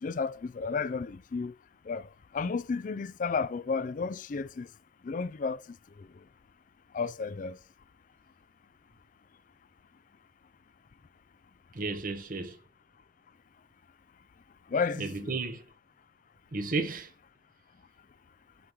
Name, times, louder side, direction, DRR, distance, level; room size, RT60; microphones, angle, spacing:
voice 1, 0.0-1.5 1.9-2.1 2.3-4.7 5.0-5.6 6.9-7.6 14.7-15.3, left 5 dB, 45° left, 0.4 m, -32 dB
voice 2, 11.7-12.6 14.9-15.7 16.5-17.1, right 3 dB, 50° right, 1.0 m, -33 dB
11.0 x 5.2 x 3.0 m
head